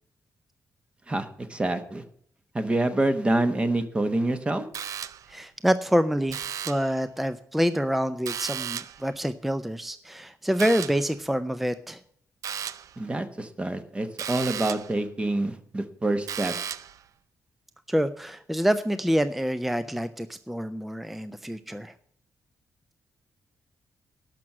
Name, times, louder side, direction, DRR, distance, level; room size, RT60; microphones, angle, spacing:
voice 1, 1.1-2.0 2.5-4.6 13.0-16.5, right 2 dB, 20° right, 9 dB, 1.1 m, -27 dB
sound 1, 4.7-5.4 6.3-7.0 8.3-9.1 10.6-11.1 12.4-13.0 14.2-15.0 16.3-17.0, right 9 dB, 70° right, 0.5 m, -35 dB
voice 2, 5.3-12.0 17.9-21.9, equal, 5° right, 12 dB, 0.4 m, -27 dB
12.0 x 6.0 x 7.5 m, 0.65 s
wide cardioid pair, 150°, 6 cm